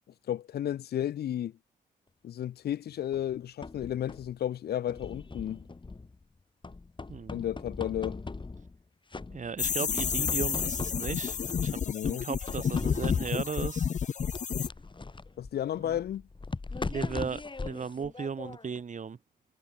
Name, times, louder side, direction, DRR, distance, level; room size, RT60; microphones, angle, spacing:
voice 1, 0.3-1.5 2.2-5.7 7.3-8.2 11.9-12.3 15.4-16.2, left 11 dB, 75° left, 1.1 m, -33 dB
sound 1, 3.1-4.4 4.9-6.2 6.6-8.8 9.1-9.7 9.9-11.9 12.5-13.6 14.3-18.8, left 3 dB, 30° left, 4.5 m, -40 dB
voice 2, 9.3-13.9 15.8-16.0 16.9-19.2, right 6 dB, 50° right, 4.5 m, -36 dB
sound 2, 9.6-14.7, left 7 dB, 50° left, 0.8 m, -30 dB
cardioid pair, 70°, 16 cm